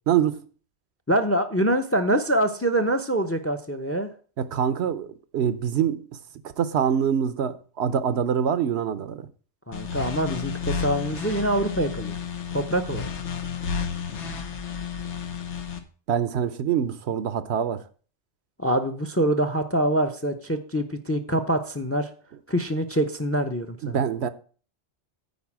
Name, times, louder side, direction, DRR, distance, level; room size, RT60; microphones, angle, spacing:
voice 1, 0.1-0.4 4.4-5.1 5.3-6.0 6.6-9.3 16.1-17.8 23.8-24.3, right 8 dB, 70° right, 0.9 m, -24 dB
voice 2, 1.1-4.1 9.7-12.2 12.5-13.0 18.6-22.1 22.5-24.0, right 1 dB, 15° left, 0.5 m, -25 dB
sound 1, 9.7-15.8, left 6 dB, 90° left, 1.3 m, -32 dB
9.5 x 4.2 x 7.2 m
omnidirectional pair, 1.2 m